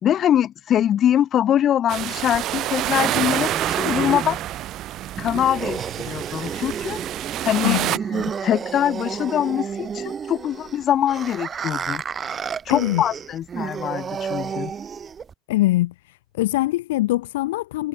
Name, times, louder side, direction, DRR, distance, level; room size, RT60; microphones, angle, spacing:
voice 1, 0.0-4.4 5.2-7.0 7.4-12.0 12.7-14.7, left 10 dB, 45° left, 4.1 m, -23 dB
sound 1, 1.9-8.0, right 14 dB, 50° right, 2.3 m, -27 dB
sound 2, 2.3-15.3, right 7 dB, 30° right, 2.4 m, -31 dB
voice 2, 12.7-13.0 15.5-15.9 16.4-17.9, left 17 dB, 75° left, 1.5 m, -22 dB
hypercardioid pair, 75°, 0 cm